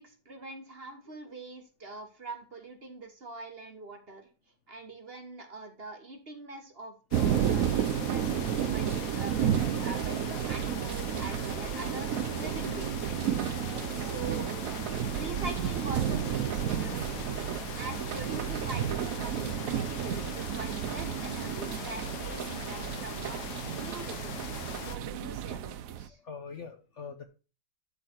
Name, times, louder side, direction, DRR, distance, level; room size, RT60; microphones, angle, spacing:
voice 1, 0.0-4.3 4.7-14.5 15.1-17.3 17.7-23.4 23.8-26.2, right 2 dB, 35° right, 4 dB, 1.4 m, -44 dB
sound 1, 7.1-25.0, left 11 dB, 70° left, 1.1 m, -42 dB
sound 2, 7.1-26.1, right 9 dB, 65° right, 0.9 m, -32 dB
voice 2, 26.2-27.3, left 5 dB, 50° left, 6 dB, 1.0 m, -45 dB
12.0 x 4.0 x 4.4 m, 0.34 s
omnidirectional pair, 1.9 m